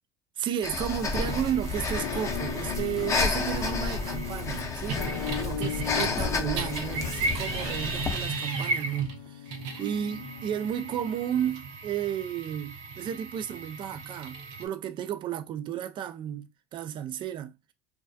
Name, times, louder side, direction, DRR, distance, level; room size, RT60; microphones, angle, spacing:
voice 1, 0.4-5.1 5.4-17.7, right 9 dB, 45° right, 0.4 m, -33 dB
Breathing, 0.6-8.3, left 4 dB, 25° left, 0.5 m, -31 dB
sound 1, 1.1-6.2 6.5-14.6, right 3 dB, 65° right, 0.7 m, -36 dB
Musical instrument, 2.0-11.8, left 9 dB, 85° left, 0.5 m, -38 dB
2.2 x 2.2 x 2.5 m
supercardioid pair, 90°, 11 cm